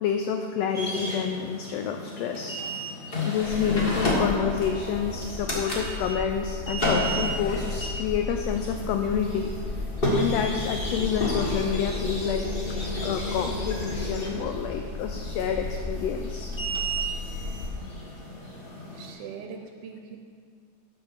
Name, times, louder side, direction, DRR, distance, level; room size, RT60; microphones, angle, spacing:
voice 1, 0.0-2.6 3.3-9.5 10.2-16.5, left 7 dB, 80° left, 5 dB, 1.5 m, -29 dB
sound 1, 0.7-19.1, left 1 dB, 35° left, 0.9 m, -32 dB
sound 2, 3.4-17.7, left 3 dB, 60° left, 2.1 m, -35 dB
voice 2, 18.9-20.2, right 6 dB, 75° right, 2 dB, 1.5 m, -41 dB
9.3 x 5.6 x 6.5 m, 2.2 s
omnidirectional pair, 3.3 m